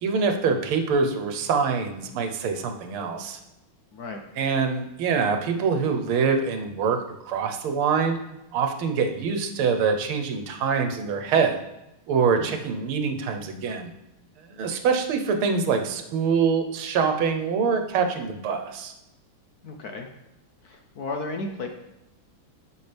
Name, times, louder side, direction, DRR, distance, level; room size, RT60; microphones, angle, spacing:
voice 1, 0.0-3.4 4.4-7.0 7.3-8.2 8.5-11.6 12.1-13.9 14.5-18.9, right 5 dB, 85° right, 5 dB, 1.8 m, -24 dB
voice 2, 3.9-4.2 12.3-12.6 19.6-20.1 20.6-21.7, left 3 dB, 60° left, 4 dB, 1.1 m, -34 dB
9.8 x 7.1 x 3.4 m, 0.92 s
omnidirectional pair, 2.3 m